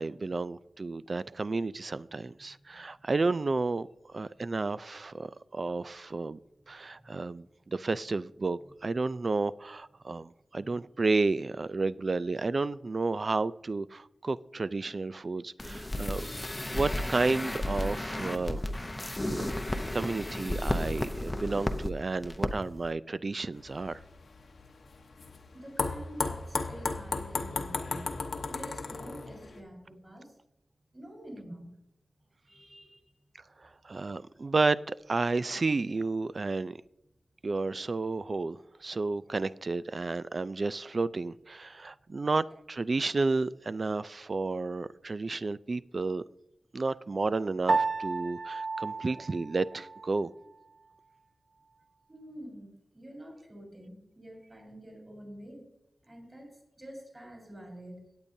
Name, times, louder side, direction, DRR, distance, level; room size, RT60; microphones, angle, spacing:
voice 1, 0.0-3.9 4.1-6.4 6.7-16.3 16.7-18.6 19.2-24.0 33.8-36.8 37.4-46.2 46.7-50.3, right 3 dB, 45° right, 0.3 m, -31 dB
voice 2, 7.0-7.4 10.6-10.8 25.5-28.1 28.5-30.4 30.9-31.7 32.5-33.1 33.4-33.7 42.2-42.3 52.1-55.7 56.0-58.1, equal, 20° right, 4.0 m, -48 dB
sound 1, 15.6-21.9 22.2-22.5 22.8-22.9, left 1 dB, 15° left, 0.7 m, -33 dB
sound 2, 23.6-29.6, left 4 dB, 80° left, 0.9 m, -35 dB
Piano, 47.7-50.2, right 3 dB, 75° right, 1.1 m, -32 dB
17.0 x 8.7 x 2.7 m
wide cardioid pair, 130°, 0 cm